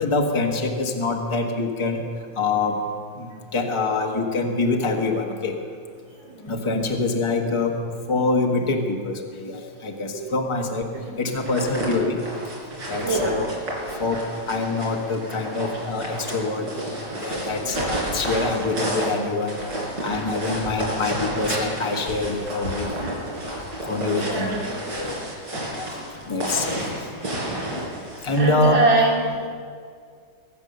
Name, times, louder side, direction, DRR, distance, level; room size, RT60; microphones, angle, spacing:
voice 1, 0.0-2.0 2.4-2.8 3.2-5.5 6.5-7.7 8.1-10.8 11.2-12.2 12.9-13.5 14.0-16.7 17.2-19.5 20.0-23.0 23.9-24.6 25.0-25.2 25.8-25.9 26.3-26.8 27.7-27.8 28.2-28.8, left 3 dB, 20° left, 2 dB, 1.2 m, -25 dB
sound 1, 11.3-28.4, right 1 dB, 65° right, 4.6 m, -31 dB
voice 2, 13.0-13.5 17.6-17.7 24.2-24.7 28.3-29.5, right 2 dB, 85° right, -3 dB, 3.4 m, -23 dB
22.5 x 8.5 x 6.8 m, 2.1 s
omnidirectional pair, 2.0 m